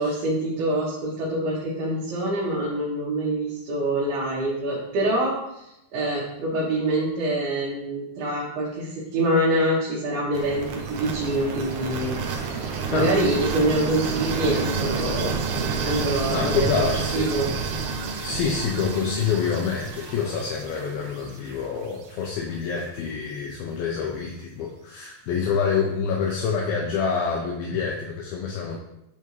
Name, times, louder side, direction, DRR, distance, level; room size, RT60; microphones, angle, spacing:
voice 1, 0.0-5.7 5.9-15.4 15.8-17.5, right 1 dB, 70° right, -6 dB, 2.9 m, -25 dB
sound 1, 10.3-22.3, right 5 dB, 85° right, 1.8 m, -30 dB
sound 2, 13.6-19.6, left 2 dB, 45° left, 1.9 m, -38 dB
voice 2, 16.3-17.3 18.2-28.8, left 6 dB, 80° left, -1 dB, 2.2 m, -27 dB
10.5 x 3.5 x 3.0 m, 0.85 s
omnidirectional pair, 4.9 m